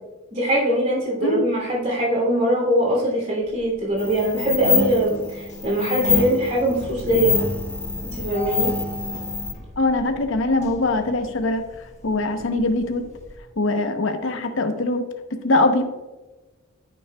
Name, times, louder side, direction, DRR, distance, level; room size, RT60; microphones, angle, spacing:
voice 1, 0.3-7.4 8.1-8.7, right 1 dB, 35° right, -3 dB, 2.8 m, -22 dB
sound 1, 3.4-4.0 4.4-4.5 4.9-13.4, right 1 dB, 35° left, 1.4 m, -38 dB
sound 2, 4.0-9.5, left 5 dB, 10° left, 0.7 m, -26 dB
voice 2, 9.8-11.6 12.0-13.0 13.6-15.0 15.4-15.8, left 2 dB, 70° left, 6 dB, 0.8 m, -22 dB
9.4 x 9.4 x 2.3 m, 1.1 s
head